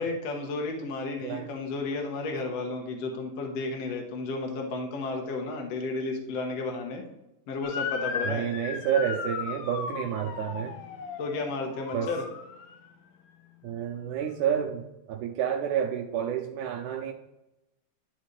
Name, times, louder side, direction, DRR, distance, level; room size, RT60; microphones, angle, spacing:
voice 1, 0.0-7.0 7.5-8.5 11.2-12.3, left 3 dB, 60° left, 1 dB, 1.9 m, -32 dB
Motor vehicle (road) / Siren, 7.6-12.9, left 6 dB, 85° left, 2.5 m, -36 dB
voice 2, 8.3-10.8 11.9-12.1 13.6-17.1, right 9 dB, 75° right, 3 dB, 1.9 m, -29 dB
12.0 x 4.1 x 3.2 m, 0.94 s
omnidirectional pair, 4.0 m